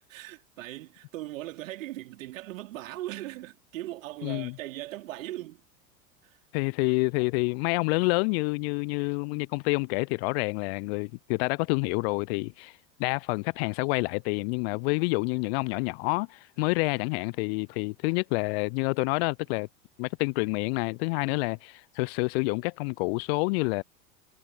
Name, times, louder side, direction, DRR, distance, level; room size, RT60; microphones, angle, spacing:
voice 1, 0.1-5.6 6.2-6.4 21.3-21.5, right 15 dB, 60° right, 3.4 m, -39 dB
voice 2, 4.2-4.6 6.5-12.7 13.0-19.7 20.0-23.8, left 30 dB, 45° left, 0.8 m, -28 dB
figure-of-eight pair, 85°, 44 cm